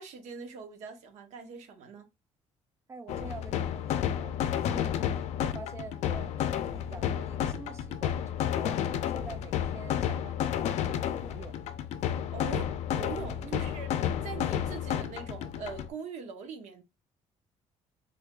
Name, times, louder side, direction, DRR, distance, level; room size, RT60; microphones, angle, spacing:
voice 1, 0.0-2.1 12.3-13.9 14.2-16.8, right 5 dB, 80° right, 1.0 m, -42 dB
voice 2, 2.9-11.5 13.4-13.6, right 4 dB, 25° right, 0.4 m, -47 dB
sound 1, 3.1-15.9, left 10 dB, 75° left, 0.5 m, -31 dB
3.4 x 2.2 x 3.7 m
cardioid pair, 105°, 12 cm